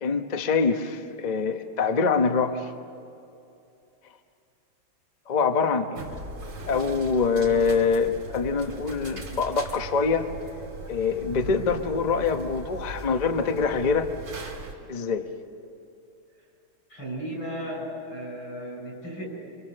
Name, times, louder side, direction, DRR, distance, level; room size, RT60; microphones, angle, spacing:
voice 1, 0.0-2.7 5.3-6.0 6.7-10.3 10.9-14.1 14.9-15.3, left 5 dB, 30° left, 6 dB, 0.8 m, -24 dB
sound 1, 5.9-14.7, right 1 dB, 90° right, 3.5 m, -39 dB
voice 2, 16.9-19.3, right 1 dB, 80° left, 0 dB, 7.1 m, -35 dB
26.0 x 25.5 x 6.7 m, 2.7 s
omnidirectional pair, 2.1 m